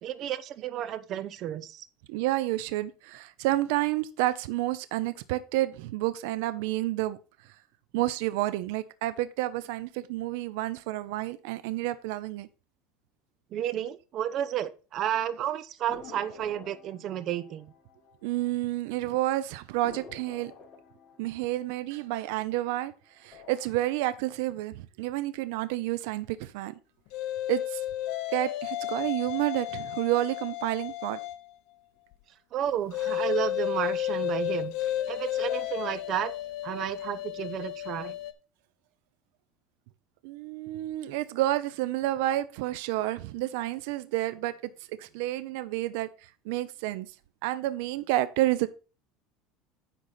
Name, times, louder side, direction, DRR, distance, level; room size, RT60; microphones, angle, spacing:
voice 1, 0.0-1.9 13.5-17.7 32.5-36.3 36.6-38.1, right 10 dB, 45° right, 0.8 m, -32 dB
voice 2, 2.1-7.2 7.9-12.5 18.2-20.5 21.2-26.8 27.5-27.8 28.3-31.2 40.2-47.1 47.4-48.7, right 16 dB, 75° right, 0.6 m, -30 dB
sound 1, 15.9-18.9 19.2-19.3 19.8-22.8 23.2-23.8, left 4 dB, 35° left, 3.6 m, -50 dB
sound 2, 27.1-31.5 32.9-38.3, left 12 dB, 65° left, 0.9 m, -32 dB
10.0 x 4.1 x 5.7 m
supercardioid pair, 140°, 0 cm